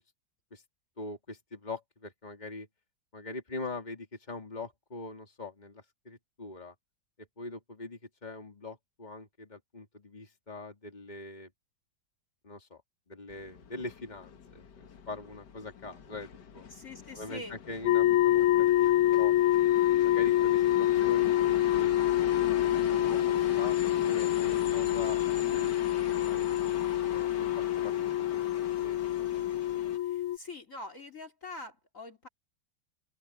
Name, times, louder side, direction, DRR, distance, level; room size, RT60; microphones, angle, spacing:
voice 1, 1.0-2.7 3.1-6.7 7.2-11.5 12.4-12.8 13.1-16.6 17.1-19.3 20.0-21.9 22.4-23.8 24.0-26.5 27.1-27.5 27.8-28.5 28.8-29.3, left 2 dB, 25° left, 3.4 m, -43 dB
sound 1, 13.3-30.0, left 7 dB, 65° left, 2.0 m, -42 dB
voice 2, 16.7-17.6 19.7-20.2 30.0-32.3, left 2 dB, 45° left, 3.3 m, -45 dB
sound 2, 17.9-30.4, left 13 dB, 90° left, 0.6 m, -26 dB
open air
omnidirectional pair, 2.0 m